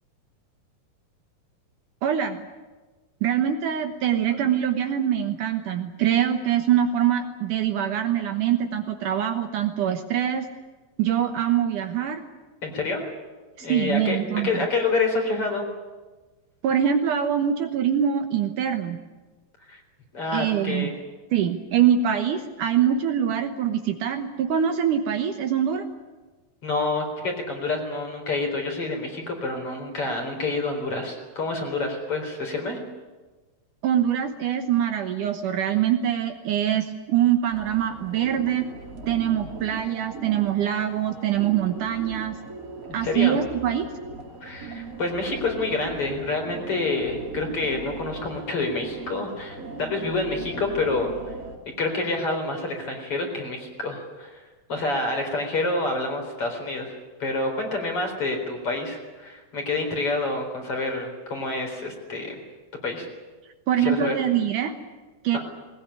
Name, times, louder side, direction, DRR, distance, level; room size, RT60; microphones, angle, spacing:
voice 1, 2.0-2.5 3.2-10.5 11.0-12.2 13.6-14.7 16.6-19.0 20.3-20.9 21.3-25.9 33.8-38.7 39.1-42.3 42.9-43.9 63.7-64.7 65.2-65.4, right 9 dB, 65° right, 6 dB, 2.5 m, -24 dB
voice 2, 12.6-13.1 13.6-14.2 14.4-15.7 19.7-19.8 20.1-20.9 26.6-32.8 42.9-43.4 44.4-51.1 51.8-54.4 54.7-62.3 62.8-63.1 63.8-64.1 65.3-65.4, left 3 dB, 40° left, 3 dB, 4.9 m, -28 dB
sound 1, 37.5-51.6, right 3 dB, 25° right, 2.9 m, -39 dB
20.5 x 20.0 x 10.0 m, 1.3 s
omnidirectional pair, 4.2 m